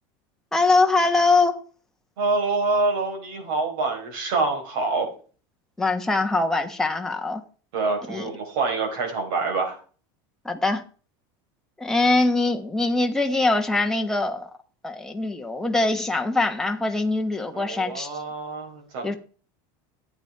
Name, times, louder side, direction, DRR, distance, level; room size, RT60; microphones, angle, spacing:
voice 1, 0.5-1.6 5.8-7.4 8.1-8.3 10.4-10.8 11.8-14.5 14.8-18.1 19.0-19.2, left 3 dB, 5° left, 1.1 m, -22 dB
voice 2, 2.2-5.1 7.7-9.8 17.5-19.2, right 3 dB, 75° right, 4.8 m, -26 dB
12.0 x 8.8 x 4.5 m
supercardioid pair, 155°, 12 cm